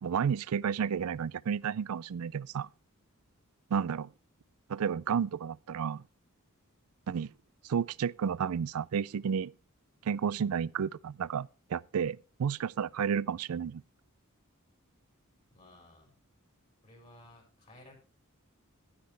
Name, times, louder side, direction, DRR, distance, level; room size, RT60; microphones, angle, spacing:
voice 1, 0.0-2.7 3.7-4.1 4.7-6.0 7.1-7.3 7.6-9.5 10.0-13.8, right 7 dB, 75° right, 0.4 m, -31 dB
voice 2, 15.5-16.1 16.8-18.0, left 1 dB, 35° left, 4.3 m, -56 dB
11.5 x 10.0 x 3.3 m
head